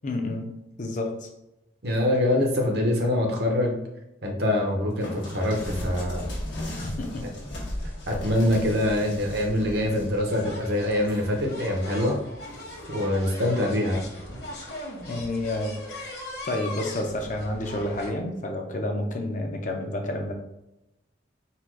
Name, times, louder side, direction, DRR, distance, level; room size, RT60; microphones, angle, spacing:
voice 1, 0.0-0.5 0.8-1.3 6.7-7.3 15.1-15.8 16.4-20.3, left 1 dB, 40° left, 3 dB, 0.6 m, -30 dB
voice 2, 1.8-3.8 4.2-6.2 7.2-7.3 8.1-12.1 12.9-14.0, left 1 dB, 55° right, 1 dB, 0.9 m, -24 dB
sound 1, 5.0-12.0 12.4-13.1 13.9-14.3, left 1 dB, 80° left, 1.3 m, -37 dB
sound 2, 7.8-7.9 8.1-8.3 9.3-9.4 10.3-18.1, left 1 dB, 60° left, 1.3 m, -40 dB
4.2 x 2.3 x 4.5 m, 0.91 s
head